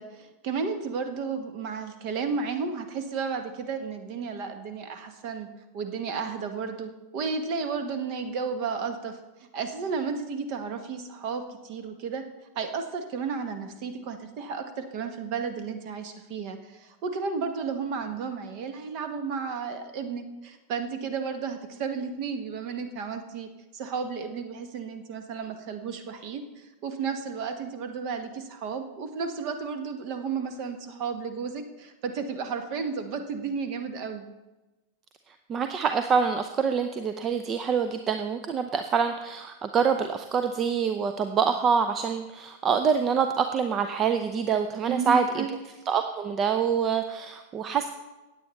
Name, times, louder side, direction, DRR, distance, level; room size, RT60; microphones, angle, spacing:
voice 1, 0.0-5.5 5.7-12.2 12.5-34.2 44.9-45.5, right 5 dB, 45° right, 8 dB, 1.2 m, -33 dB
voice 2, 35.3-45.4 45.9-47.9, right 6 dB, 25° right, 8 dB, 0.6 m, -26 dB
16.0 x 9.3 x 3.2 m, 1.1 s
figure-of-eight pair, 90°, 0 cm